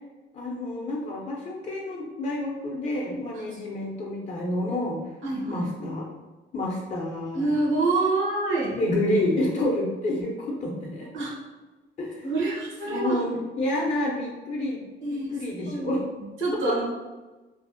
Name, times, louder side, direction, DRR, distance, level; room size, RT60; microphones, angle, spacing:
voice 1, 0.3-5.0 5.4-6.1 6.5-7.4 8.8-11.1 12.0-12.3 12.8-14.8 15.1-16.0 16.6-16.7, left 1 dB, 35° left, -3 dB, 0.4 m, -28 dB
voice 2, 5.2-5.7 7.3-8.8 11.1-11.4 12.2-13.2 15.0-15.4 15.6-16.9, right 2 dB, 75° right, -3 dB, 0.8 m, -27 dB
2.5 x 2.0 x 2.4 m, 1.2 s
cardioid pair, 90°, 20 cm